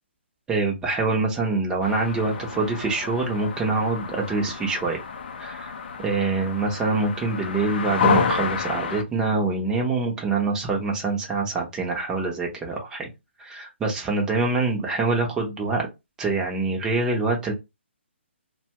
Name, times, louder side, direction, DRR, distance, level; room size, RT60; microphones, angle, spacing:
voice 1, 0.5-5.0 5.4-5.7 6.0-13.1 13.4-15.9 16.2-17.5, right 3 dB, 10° right, 0 dB, 0.7 m, -25 dB
sound 1, 1.8-9.0, left 6 dB, 50° left, 0.5 m, -29 dB
2.6 x 2.2 x 2.9 m, 0.22 s
hypercardioid pair, 150°, 7 cm